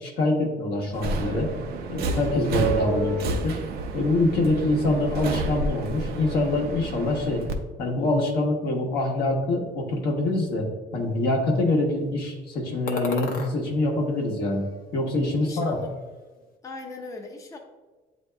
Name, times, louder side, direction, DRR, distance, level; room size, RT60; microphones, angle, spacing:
voice 1, 0.0-1.5 1.9-3.5 3.9-7.4 7.8-10.7 10.9-15.8, left 2 dB, 75° left, 0 dB, 1.1 m, -25 dB
Subway metro underground, 0.9-7.5, right 2 dB, 65° right, 0.6 m, -30 dB
sound 1, 12.9-13.5 14.1-15.1 15.3-16.2, left 4 dB, 55° left, 0.8 m, -36 dB
voice 2, 15.4-15.9 16.6-17.6, left 3 dB, 20° left, 2 dB, 0.5 m, -38 dB
8.2 x 2.7 x 2.2 m, 1.3 s
cardioid pair, 110°, 17 cm